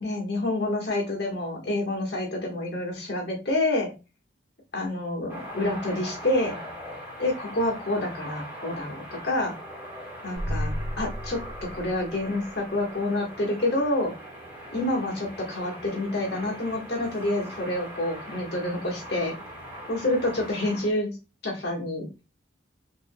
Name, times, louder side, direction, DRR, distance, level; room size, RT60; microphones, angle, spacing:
voice 1, 0.0-3.9 4.7-6.6 7.2-9.5 10.2-10.7 11.0-14.1 14.7-19.4 19.9-21.2 21.4-22.1, left 1 dB, 55° left, -1 dB, 1.6 m, -28 dB
sound 1, 5.3-20.9, equal, 10° right, 1.6 m, -41 dB
sound 2, 10.3-12.6, equal, 70° right, 1.1 m, -33 dB
5.8 x 2.9 x 2.3 m, 0.29 s
head